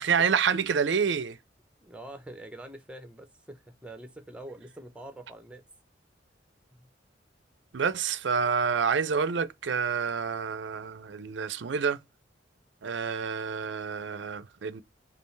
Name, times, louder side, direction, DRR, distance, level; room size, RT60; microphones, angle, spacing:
voice 1, 0.0-1.4 7.7-12.0 12.8-14.8, right 6 dB, 75° right, 0.5 m, -28 dB
voice 2, 1.8-5.6 6.7-6.9, right 1 dB, 5° right, 0.7 m, -45 dB
5.3 x 2.4 x 3.2 m
head